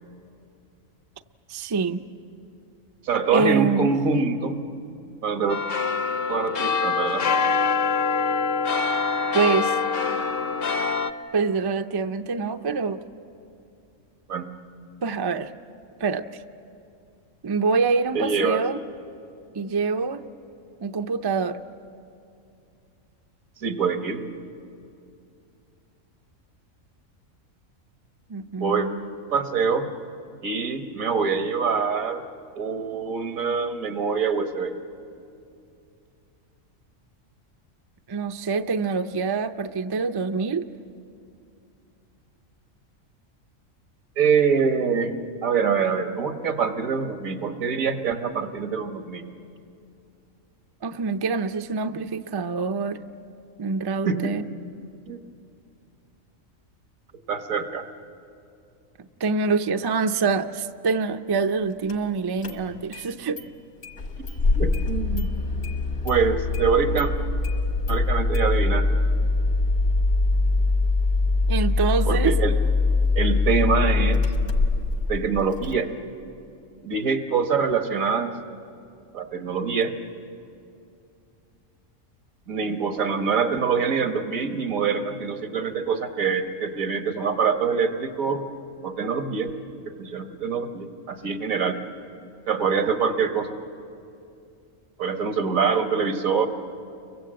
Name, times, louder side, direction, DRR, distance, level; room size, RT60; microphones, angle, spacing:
voice 1, 1.5-2.0 3.3-3.9 9.3-9.8 11.3-13.0 15.0-15.5 16.0-16.4 17.4-18.8 19.5-20.2 20.8-21.6 28.3-29.1 38.1-40.7 50.8-53.0 53.6-54.4 59.2-63.4 71.5-72.4, right 4 dB, 40° right, 8 dB, 0.3 m, -25 dB
voice 2, 3.0-4.6 5.2-5.6 6.3-7.3 14.3-14.5 18.1-18.6 23.6-24.2 28.6-28.9 29.3-29.9 30.4-32.2 32.5-34.7 44.2-45.1 45.4-49.2 54.1-54.3 55.1-55.2 57.3-57.8 64.5-65.3 66.0-67.1 67.9-68.9 72.0-72.6 73.1-74.2 75.1-75.9 76.8-78.3 79.1-79.9 82.5-88.4 88.8-89.5 89.8-91.8 92.5-93.6 95.0-96.5, right 5 dB, 85° right, 6 dB, 1.7 m, -24 dB
sound 1, 5.5-11.1, left 5 dB, 50° left, 0.9 m, -24 dB
Engine starting, 61.9-62.0 62.4-63.0 63.4-63.5 63.8-75.7, left 3 dB, 70° left, 2.0 m, -23 dB
29.5 x 23.5 x 7.6 m, 2.6 s
omnidirectional pair, 1.4 m